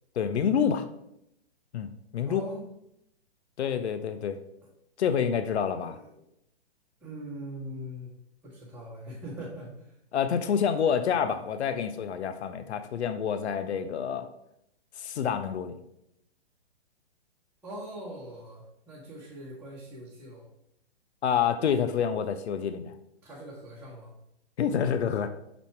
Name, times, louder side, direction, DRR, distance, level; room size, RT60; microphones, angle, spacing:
voice 1, 0.2-0.8 1.7-2.4 3.6-4.4 5.0-6.0 10.1-14.3 15.0-15.8 21.2-22.9 24.6-25.3, left 7 dB, 75° left, 10 dB, 0.7 m, -28 dB
voice 2, 2.2-2.6 4.6-4.7 5.8-6.2 7.0-8.2 8.4-10.0 10.7-10.9 17.6-20.5 23.2-24.1, right 1 dB, 5° right, -9 dB, 1.2 m, -42 dB
6.2 x 4.1 x 4.5 m, 0.80 s
hypercardioid pair, 135°, 33 cm